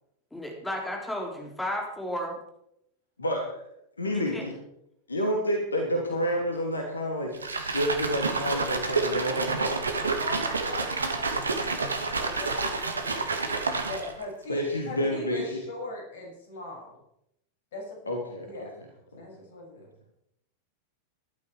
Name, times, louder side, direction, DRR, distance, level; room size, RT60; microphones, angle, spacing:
voice 1, 0.3-2.4 4.1-4.5, equal, 5° left, 1 dB, 3.9 m, -33 dB
voice 2, 3.2-3.6 4.0-4.5 5.1-9.8 14.5-15.6 18.1-18.7 19.1-19.2, equal, 75° left, 2 dB, 2.9 m, -29 dB
sound 1, 7.3-14.2, right 3 dB, 75° right, 2.1 m, -29 dB
voice 3, 10.1-13.3 13.8-16.9 17.7-18.0 18.4-18.7 19.1-19.9, left 2 dB, 60° left, 0 dB, 7.5 m, -40 dB
18.0 x 12.5 x 4.8 m, 0.78 s
figure-of-eight pair, 90°, 0 cm